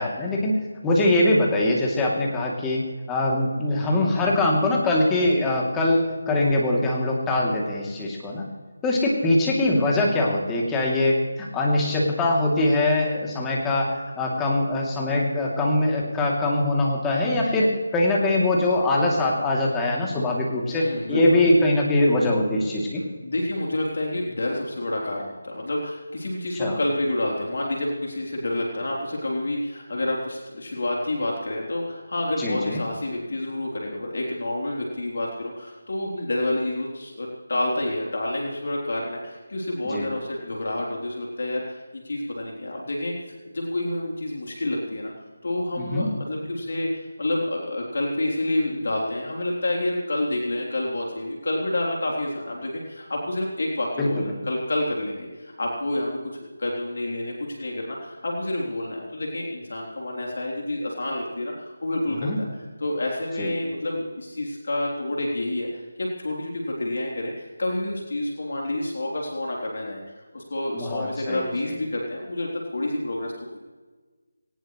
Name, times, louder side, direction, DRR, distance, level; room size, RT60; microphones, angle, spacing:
voice 1, 0.0-2.8 3.1-8.4 8.8-23.0 26.5-26.8 32.4-32.8 39.9-40.1 45.8-46.1 54.0-54.1 62.2-62.4 63.4-63.5 70.7-71.8, left 1 dB, 10° left, -3 dB, 3.0 m, -22 dB
voice 2, 20.7-21.4 23.2-43.1 43.5-45.1 45.4-56.1 56.6-70.0 70.3-73.6, left 1 dB, 60° left, -2 dB, 3.7 m, -28 dB
20.5 x 19.0 x 3.3 m, 1.3 s
figure-of-eight pair, 160°, 0 cm